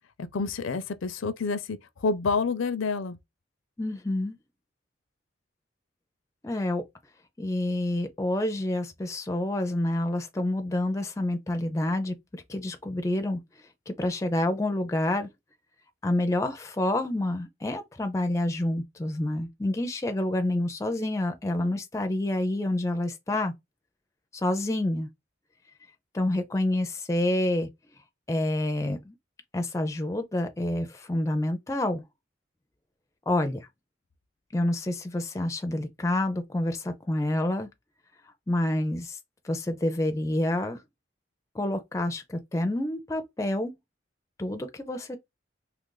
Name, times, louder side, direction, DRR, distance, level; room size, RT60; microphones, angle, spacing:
voice 1, 0.2-3.2, left 4 dB, 80° left, 0.5 m, -28 dB
voice 2, 3.8-4.4 6.4-6.8 7.4-13.4 13.9-15.3 16.0-23.5 24.3-25.1 26.1-27.7 28.3-29.1 29.5-32.0 33.3-33.7 34.5-37.7 38.5-39.2 39.4-40.8 41.5-43.7 44.4-45.2, left 1 dB, 15° left, 0.4 m, -28 dB
2.9 x 2.5 x 3.7 m
head